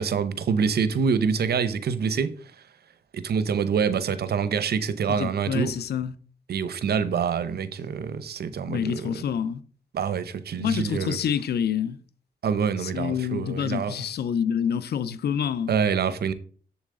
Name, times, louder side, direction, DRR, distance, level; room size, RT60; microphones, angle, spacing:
voice 1, 0.0-2.3 3.1-5.7 6.5-9.1 9.9-11.2 12.4-14.0 15.7-16.3, right 6 dB, 80° right, 0.8 m, -26 dB
voice 2, 5.1-6.1 8.7-9.6 10.6-12.0 12.8-15.7, left 8 dB, 90° left, 0.6 m, -27 dB
7.2 x 7.2 x 3.7 m
cardioid pair, 65°, 16 cm